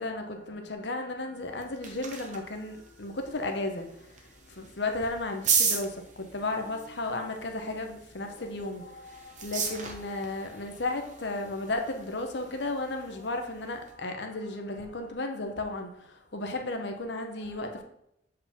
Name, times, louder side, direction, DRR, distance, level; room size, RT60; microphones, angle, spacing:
voice 1, 0.0-17.8, left 2 dB, 65° left, 0.9 m, -34 dB
sound 1, 1.4-13.9, right 5 dB, 40° right, 1.0 m, -36 dB
7.6 x 4.8 x 3.6 m
head